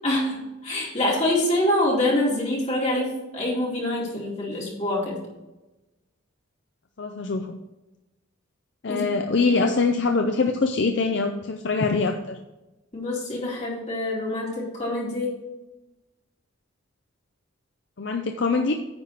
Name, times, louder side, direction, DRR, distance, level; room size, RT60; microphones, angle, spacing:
voice 1, 0.0-5.2 8.9-9.7 12.9-15.3, left 1 dB, 35° left, -5 dB, 2.6 m, -26 dB
voice 2, 7.0-7.6 8.8-12.4 18.0-18.7, left 4 dB, 60° left, 4 dB, 0.6 m, -23 dB
9.7 x 4.2 x 6.6 m, 1.0 s
head